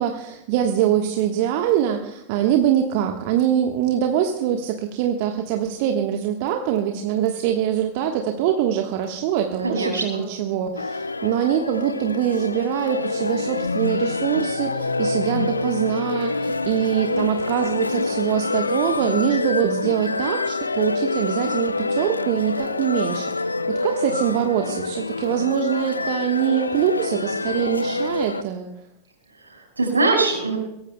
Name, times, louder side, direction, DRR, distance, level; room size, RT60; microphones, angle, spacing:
voice 1, 0.0-28.7, right 9 dB, 50° right, 4 dB, 1.2 m, -23 dB
voice 2, 9.6-10.2 29.4-30.6, right 3 dB, 80° right, 1 dB, 5.1 m, -22 dB
sound 1, 10.8-28.4, left 3 dB, 80° left, 0.5 m, -26 dB
23.0 x 17.5 x 2.2 m, 0.85 s
figure-of-eight pair, 90°, 0 cm